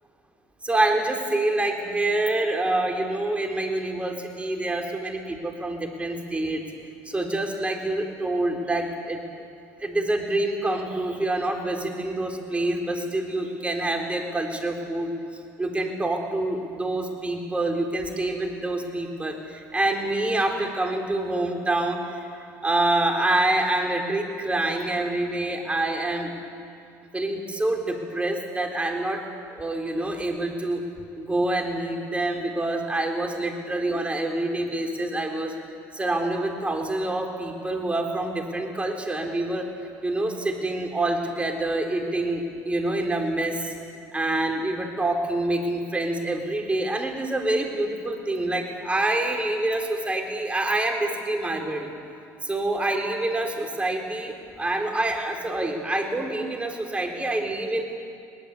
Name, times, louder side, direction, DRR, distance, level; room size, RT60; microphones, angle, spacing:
voice 1, 0.6-6.6 7.0-9.2 9.8-15.1 15.6-26.3 27.1-29.2 29.5-30.8 31.2-35.5 35.9-39.7 40.0-43.7 44.1-51.9 52.4-57.8, right 2 dB, 15° right, 2 dB, 4.0 m, -26 dB
22.0 x 19.5 x 8.5 m, 2.4 s
supercardioid pair, 85°, 8 cm